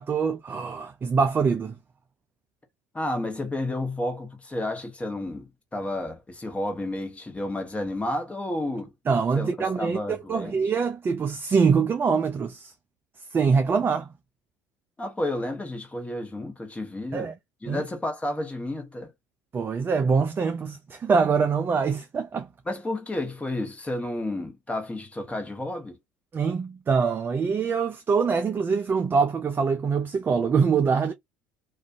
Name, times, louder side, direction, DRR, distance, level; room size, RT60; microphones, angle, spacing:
voice 1, 0.0-1.7 9.1-12.7 13.3-14.1 17.1-17.3 17.7-17.8 19.5-22.5 26.3-31.1, right 5 dB, 25° right, 0.4 m, -24 dB
voice 2, 2.9-8.9 9.3-10.6 15.0-17.3 17.6-19.1 22.7-26.0, left 1 dB, 15° left, 1.0 m, -31 dB
2.4 x 2.3 x 2.5 m
hypercardioid pair, 65°, 8 cm